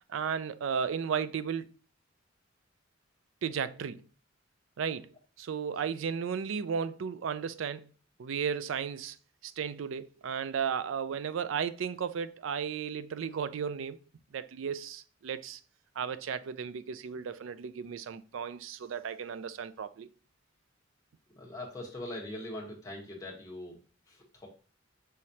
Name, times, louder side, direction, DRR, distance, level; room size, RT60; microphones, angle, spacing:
voice 1, 0.1-1.7 3.4-4.0 4.8-5.1 5.4-7.9 8.2-9.2 9.4-14.0 14.3-15.6 16.0-20.1, right 7 dB, 75° right, 0.4 m, -34 dB
voice 2, 21.3-24.5, left 1 dB, 20° left, 1.4 m, -42 dB
5.7 x 3.1 x 2.7 m
head